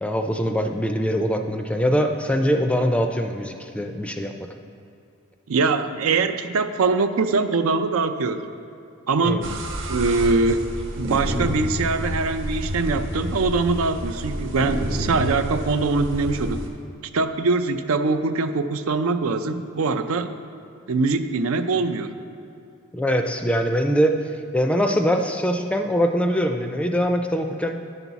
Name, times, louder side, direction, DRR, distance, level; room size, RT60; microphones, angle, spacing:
voice 1, 0.0-4.5 9.2-9.5 22.9-24.2 24.5-27.8, equal, 5° left, 5 dB, 0.4 m, -23 dB
voice 2, 5.5-8.4 9.1-9.5 9.9-10.7 11.0-16.6 17.1-20.3 20.9-22.1, right 3 dB, 85° right, 9 dB, 0.5 m, -22 dB
sound 1, 9.4-16.7, equal, 60° right, 1.0 m, -29 dB
11.0 x 5.9 x 4.0 m, 2.6 s
head